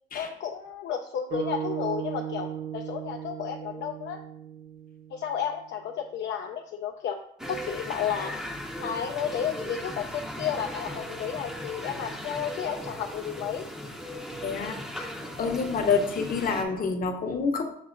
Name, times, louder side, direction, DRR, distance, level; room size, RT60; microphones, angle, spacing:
voice 1, 0.1-2.5 2.7-4.2 5.1-7.2 7.5-8.4 8.8-13.7, left 8 dB, 65° left, 3 dB, 0.4 m, -32 dB
sound 1, 1.3-5.6, right 9 dB, 55° right, 1.2 m, -36 dB
sound 2, 7.4-16.6, equal, 5° right, 0.6 m, -38 dB
voice 2, 14.4-15.1 15.4-17.6, left 5 dB, 45° left, 3 dB, 0.8 m, -27 dB
7.2 x 2.7 x 2.5 m, 0.69 s
cardioid pair, 90°, 20 cm